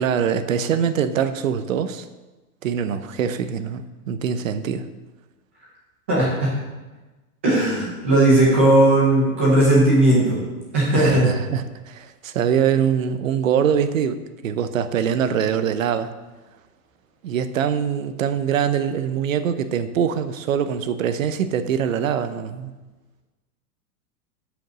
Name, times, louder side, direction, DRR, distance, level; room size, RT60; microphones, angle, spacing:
voice 1, 0.0-2.1 2.6-4.9 10.9-14.2 14.4-16.1 17.2-22.7, right 8 dB, 60° right, 11 dB, 0.8 m, -23 dB
voice 2, 6.1-6.6 7.4-10.5 10.7-11.3, right 1 dB, 10° right, -6 dB, 0.5 m, -17 dB
7.8 x 5.2 x 7.2 m, 1.2 s
supercardioid pair, 180°, 46 cm